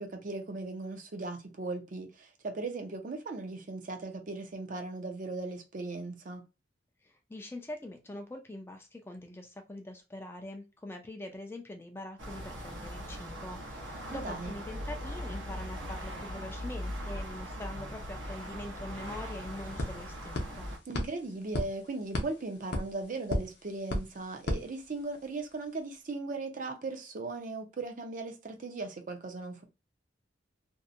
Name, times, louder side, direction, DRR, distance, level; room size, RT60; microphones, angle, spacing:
voice 1, 0.0-6.4 14.1-14.5 20.9-29.6, right 3 dB, 45° right, 0.5 m, -38 dB
voice 2, 7.0-20.7, left 1 dB, 15° left, 0.4 m, -43 dB
sound 1, 12.2-20.8, equal, 85° right, 0.9 m, -40 dB
sound 2, 19.0-25.4, left 1 dB, 60° left, 0.6 m, -37 dB
2.6 x 2.1 x 2.5 m
head